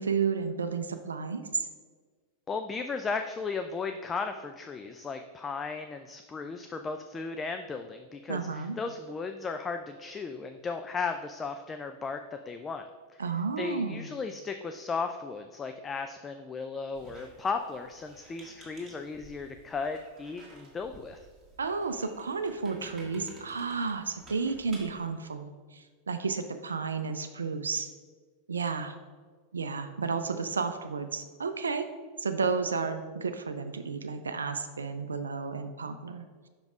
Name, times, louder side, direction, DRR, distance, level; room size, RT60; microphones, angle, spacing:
voice 1, 0.0-1.7 8.3-8.8 13.2-14.1 21.6-27.9 28.5-28.9 29.5-31.9 32.2-36.3, right 5 dB, 75° right, 8 dB, 0.4 m, -32 dB
voice 2, 2.5-12.8 13.6-21.2, left 4 dB, 20° left, 7 dB, 0.3 m, -35 dB
Squeak, 16.9-25.1, right 2 dB, 15° right, 1.7 m, -53 dB
5.8 x 5.2 x 3.5 m, 1.5 s
figure-of-eight pair, 90°, 0 cm